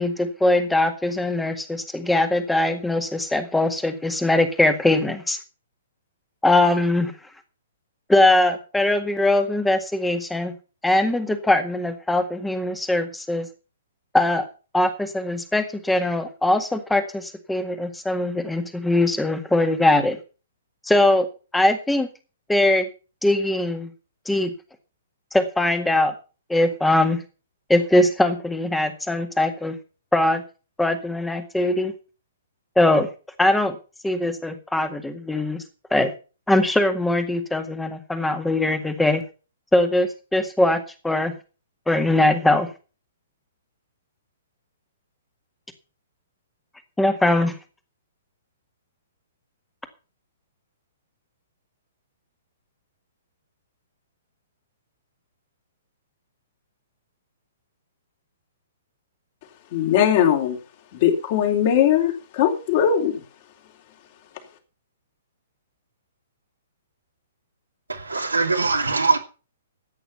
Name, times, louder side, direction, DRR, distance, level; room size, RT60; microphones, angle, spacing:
voice 1, 0.0-5.4 6.4-7.1 8.1-10.5 10.8-13.5 14.1-14.5 14.7-20.2 20.9-21.3 21.5-22.1 22.5-22.9 23.2-23.9 24.3-24.5 25.3-26.1 26.5-27.2 27.7-29.8 30.1-30.4 30.8-31.9 32.8-33.1 33.4-33.8 34.0-35.6 35.9-36.1 36.5-39.2 39.7-41.3 41.9-42.7 47.0-47.6, left 1 dB, 5° left, 1.9 m, -21 dB
voice 2, 59.7-60.6 60.9-63.2, left 9 dB, 40° left, 3.5 m, -20 dB
voice 3, 67.9-69.2, right 4 dB, 75° right, 2.5 m, -22 dB
14.0 x 9.1 x 5.6 m
figure-of-eight pair, 115°, 0 cm